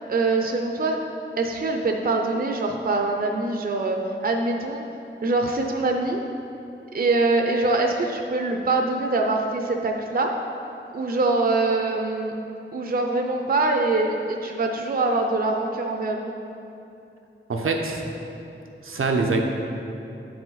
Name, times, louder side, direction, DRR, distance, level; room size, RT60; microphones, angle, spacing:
voice 1, 0.1-1.0 1.4-4.8 5.2-6.2 6.9-10.3 10.9-12.3 12.7-16.3, right 3 dB, 45° right, 2 dB, 0.5 m, -24 dB
voice 2, 17.5-18.0 18.8-19.4, right 3 dB, 90° right, 2 dB, 0.7 m, -24 dB
9.2 x 4.8 x 4.0 m, 2.8 s
wide cardioid pair, 70°, 21 cm